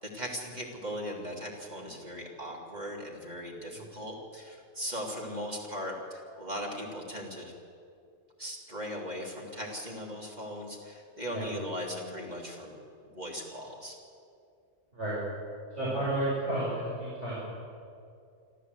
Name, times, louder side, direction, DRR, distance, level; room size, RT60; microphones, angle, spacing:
voice 1, 0.0-7.5 8.4-12.7 13.0-13.9, equal, 35° right, -1 dB, 3.1 m, -38 dB
voice 2, 15.7-17.4, right 1 dB, 65° right, -8 dB, 6.1 m, -31 dB
26.0 x 13.5 x 8.2 m, 2.4 s
omnidirectional pair, 1.3 m